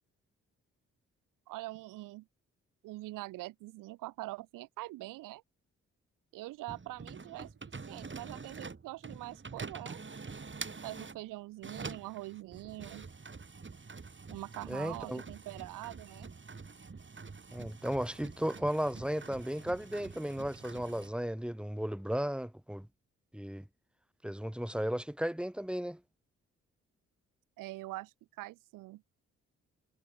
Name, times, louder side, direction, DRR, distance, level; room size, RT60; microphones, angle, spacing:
voice 1, 1.5-2.3 2.8-5.4 6.3-7.5 7.9-10.0 10.8-13.1 14.3-16.3 27.6-29.0, right 18 dB, 90° right, 4.4 m, -44 dB
sound 1, 6.7-11.2 11.6-21.1, right 4 dB, 40° right, 6.8 m, -46 dB
voice 2, 14.7-15.2 17.5-22.9 23.3-23.6 24.2-26.0, equal, 5° right, 6.9 m, -35 dB
supercardioid pair, 50°, 31 cm